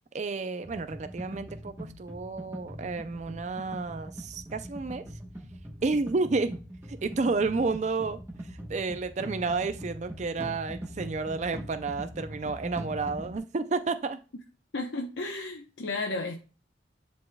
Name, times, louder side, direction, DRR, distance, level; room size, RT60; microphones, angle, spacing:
voice 1, 0.1-5.0 5.8-6.6 6.9-14.2, right 3 dB, 35° right, 0.4 m, -31 dB
sound 1, 0.6-13.4, equal, 15° right, 1.0 m, -42 dB
voice 2, 14.7-16.3, left 2 dB, 70° left, 0.8 m, -33 dB
10.5 x 4.2 x 2.2 m
head